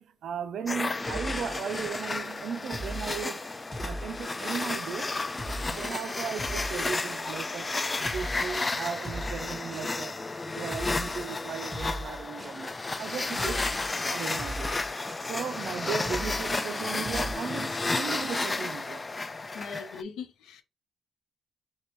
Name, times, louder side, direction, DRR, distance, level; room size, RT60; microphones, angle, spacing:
voice 1, 0.0-3.5 3.8-5.1 5.7-7.7 8.0-10.1 10.4-13.6 14.1-14.8 15.2-19.0, right 7 dB, 65° right, 0.4 m, -36 dB
sound 1, 0.7-20.0, left 3 dB, 25° left, 0.3 m, -32 dB
sound 2, 1.1-2.0 2.7-3.3 3.7-4.6 5.4-6.0 6.4-7.3 8.0-8.6 9.0-10.0 10.7-11.3 11.7-12.6 13.4-13.9 14.4-15.3 16.0-16.6 17.0-17.3, equal, 5° right, 0.8 m, -39 dB
voice 2, 13.3-13.7 19.5-20.6, left 6 dB, 85° left, 0.7 m, -40 dB
5.1 x 2.2 x 3.0 m
cardioid pair, 90°, 0 cm